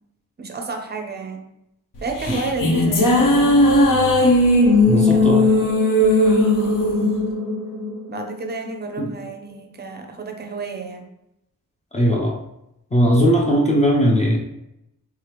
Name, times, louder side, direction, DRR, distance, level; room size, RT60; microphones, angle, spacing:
voice 1, 0.4-1.4 2.0-3.6 4.9-5.8 6.4-7.3 8.1-11.1, right 3 dB, 30° right, 4 dB, 0.5 m, -31 dB
sound 1, 2.0-8.5, left 1 dB, 65° left, 0.7 m, -17 dB
voice 2, 4.9-5.4 9.0-9.1 11.9-12.3 12.9-14.4, equal, 20° left, -2 dB, 0.5 m, -18 dB
3.5 x 3.3 x 2.9 m, 0.85 s
wide cardioid pair, 170°, 34 cm